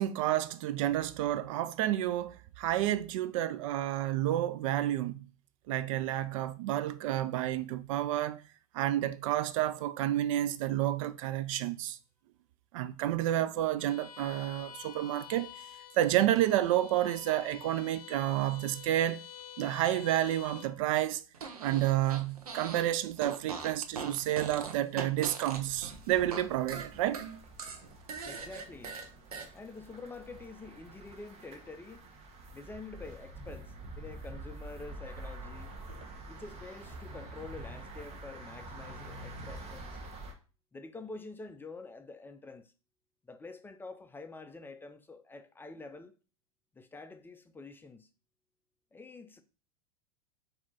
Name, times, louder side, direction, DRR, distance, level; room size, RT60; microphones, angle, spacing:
voice 1, 0.0-5.3 5.7-8.4 8.7-12.0 12.7-15.5 16.0-19.3 19.6-21.2 21.6-27.2, right 13 dB, 60° right, 0.4 m, -30 dB
Bowed string instrument, 13.8-20.8, left 10 dB, 80° left, 0.6 m, -49 dB
Fart, 21.3-22.9 23.2-26.4 26.7-29.5, right 5 dB, 90° right, 0.8 m, -41 dB
sound 1, 25.5-40.3, right 2 dB, 35° right, 1.1 m, -47 dB
voice 2, 28.2-29.0 29.5-32.0 32.5-35.7 36.3-40.0 40.7-42.7 43.3-46.1 46.7-48.1 48.9-49.4, left 3 dB, 10° left, 0.5 m, -47 dB
4.3 x 2.7 x 4.1 m
hypercardioid pair, 100°, 19 cm